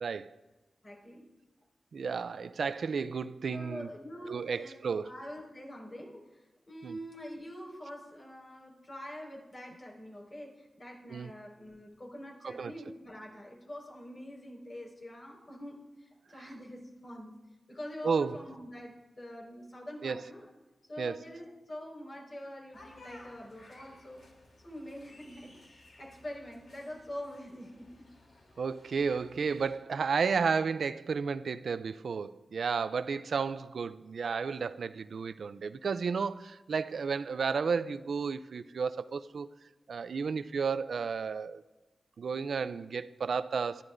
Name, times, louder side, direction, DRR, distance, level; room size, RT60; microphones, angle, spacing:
voice 1, 0.0-0.3 1.9-3.9 4.3-5.1 6.8-7.0 11.1-11.3 12.4-12.7 18.0-18.4 20.0-20.2 21.0-21.2 28.6-39.5 39.9-41.6 42.2-43.8, right 5 dB, 85° right, 0.4 m, -32 dB
voice 2, 0.8-1.3 3.5-17.4 17.7-20.5 20.8-24.2 24.6-28.1, equal, 45° left, 4.8 m, -45 dB
sound 1, 22.7-29.8, left 2 dB, 80° left, 3.0 m, -57 dB
20.5 x 12.5 x 2.6 m
cardioid pair, 60°, 0 cm